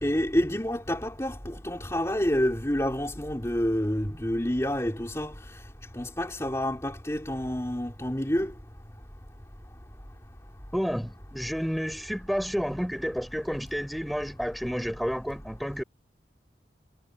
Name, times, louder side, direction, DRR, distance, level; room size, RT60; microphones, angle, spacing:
voice 1, 0.0-5.3 6.0-8.5, equal, 15° left, 3.3 m, -28 dB
voice 2, 10.7-15.8, equal, ahead, 7.4 m, -30 dB
head